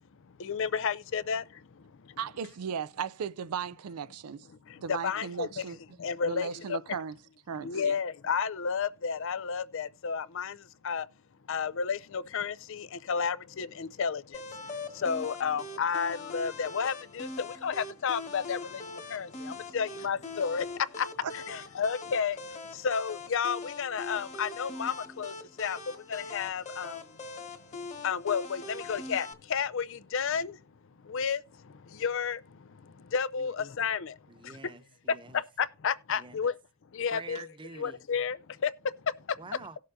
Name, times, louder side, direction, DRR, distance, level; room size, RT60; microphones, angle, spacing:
voice 1, 0.2-2.2 4.7-5.6 6.0-6.8 7.6-11.1 11.5-27.1 28.0-30.6 31.0-34.7 35.1-36.5 36.9-37.5 37.8-39.4, left 6 dB, 60° left, 0.5 m, -32 dB
voice 2, 2.2-4.5 4.8-5.8 6.2-7.2 7.5-7.9 21.2-21.3, right 6 dB, 85° right, 0.4 m, -36 dB
sound 1, 14.3-29.3, left 3 dB, 30° left, 1.4 m, -42 dB
voice 3, 34.3-35.4 36.1-36.5 37.1-38.0 39.4-39.8, right 3 dB, 20° right, 0.6 m, -47 dB
18.0 x 6.5 x 2.6 m
head